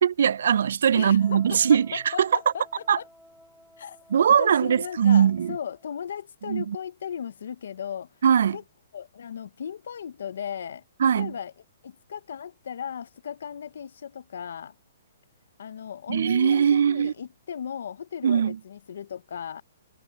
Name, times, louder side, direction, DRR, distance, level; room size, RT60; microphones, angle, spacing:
voice 1, 0.0-2.3 2.9-3.0 4.1-5.6 6.5-6.8 8.2-8.6 11.0-11.3 16.1-17.1 18.2-18.6, right 8 dB, 60° right, 0.3 m, -21 dB
voice 2, 0.9-3.1 3.8-4.0 4.4-8.1 8.5-8.6 8.9-11.5 11.8-14.8 15.6-19.6, left 8 dB, 60° left, 0.6 m, -36 dB
Wind instrument woodwind instrument, 1.2-5.9, equal, ahead, 0.7 m, -53 dB
hypercardioid pair, 175°, 0 cm